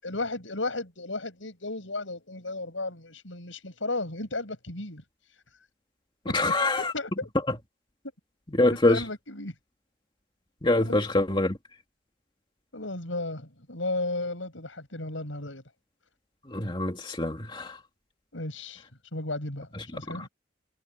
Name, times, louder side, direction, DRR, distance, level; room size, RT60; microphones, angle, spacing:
voice 1, 0.0-5.0 6.2-7.3 8.7-9.5 10.8-11.0 12.7-15.6 18.3-18.8 19.1-20.3, left 2 dB, 85° left, 7.0 m, -34 dB
voice 2, 6.3-6.9 8.6-9.0 10.6-11.6 16.5-17.8 20.1-20.2, left 2 dB, 25° left, 2.5 m, -24 dB
head